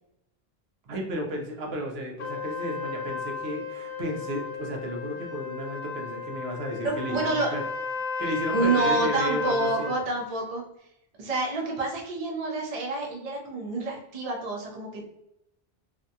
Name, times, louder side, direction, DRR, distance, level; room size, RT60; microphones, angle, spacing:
voice 1, 0.9-7.6 8.2-9.9, equal, 75° right, 1 dB, 0.9 m, -33 dB
Trumpet, 2.2-10.0, left 5 dB, 65° left, 0.8 m, -33 dB
voice 2, 6.8-7.6 8.5-10.6 11.2-15.1, right 3 dB, 45° right, -1 dB, 0.6 m, -28 dB
2.6 x 2.2 x 2.6 m, 0.83 s
omnidirectional pair, 1.1 m